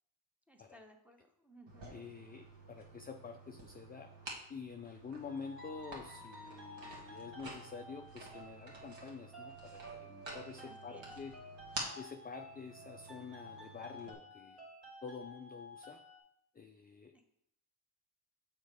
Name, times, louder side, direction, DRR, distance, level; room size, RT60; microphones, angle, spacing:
voice 1, 0.5-1.9 10.6-11.1 17.1-17.3, equal, 5° right, 3 dB, 0.8 m, -59 dB
sound 1, 1.7-14.1, right 2 dB, 65° right, 1.7 m, -50 dB
voice 2, 1.9-4.1 4.5-11.4 12.0-14.6 15.0-16.0 16.5-17.3, left 5 dB, 20° left, 5 dB, 0.3 m, -48 dB
sound 2, 5.3-16.2, equal, 85° right, 2.5 m, -53 dB
6.2 x 3.7 x 4.7 m, 0.75 s
cardioid pair, 70°, 50 cm